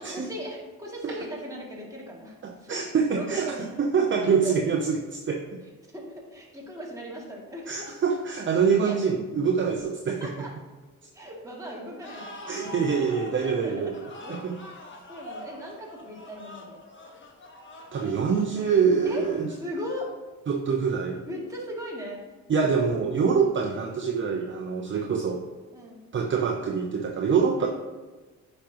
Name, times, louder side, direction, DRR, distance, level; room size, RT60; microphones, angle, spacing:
voice 1, 0.0-2.8 3.1-3.6 4.4-4.6 5.9-7.9 8.8-9.1 10.1-10.5 11.1-12.9 13.6-14.0 14.2-16.8 19.0-19.2 19.6-20.1 21.3-22.2 23.2-23.4 25.7-26.0 27.6-27.7, equal, 10° right, -4 dB, 2.5 m, -38 dB
voice 2, 2.4-5.6 7.7-10.3 12.5-14.0 14.3-14.6 17.9-19.5 20.5-21.2 22.5-25.5 26.1-27.7, right 6 dB, 40° right, 2 dB, 0.7 m, -25 dB
sound 1, 12.0-19.8, left 1 dB, 40° left, 1.4 m, -44 dB
9.5 x 5.3 x 3.0 m, 1.2 s
cardioid pair, 90°, 30 cm